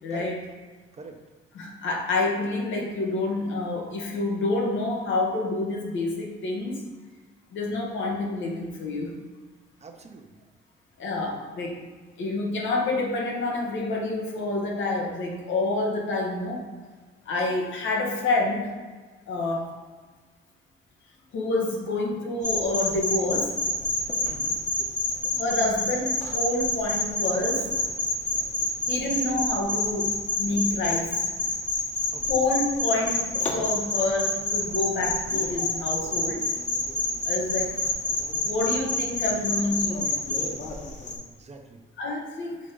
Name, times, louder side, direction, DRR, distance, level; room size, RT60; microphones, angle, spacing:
voice 1, 0.0-0.4 1.5-6.9 7.5-9.1 11.0-11.8 12.2-16.6 17.3-18.7 19.3-19.7 21.3-23.6 25.4-27.7 28.9-31.2 32.3-36.5 37.2-37.8 38.4-40.0 42.0-42.6, left 2 dB, 75° left, 0 dB, 1.3 m, -28 dB
voice 2, 9.8-10.4 24.2-24.6 32.1-32.3 41.3-41.8, right 4 dB, 35° right, 4 dB, 0.7 m, -44 dB
sound 1, 22.4-41.2, left 2 dB, 35° left, 1.2 m, -28 dB
5.1 x 3.6 x 5.2 m, 1.4 s
cardioid pair, 90°, 20 cm